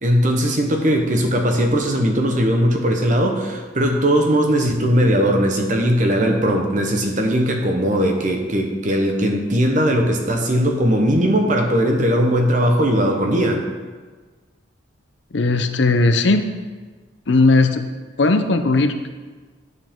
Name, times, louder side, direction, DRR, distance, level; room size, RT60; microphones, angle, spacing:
voice 1, 0.0-13.6, equal, 40° right, 3 dB, 1.0 m, -19 dB
voice 2, 15.3-16.5 17.3-17.9 18.2-19.1, left 3 dB, 70° left, 8 dB, 0.6 m, -17 dB
9.7 x 7.1 x 3.7 m, 1.4 s
head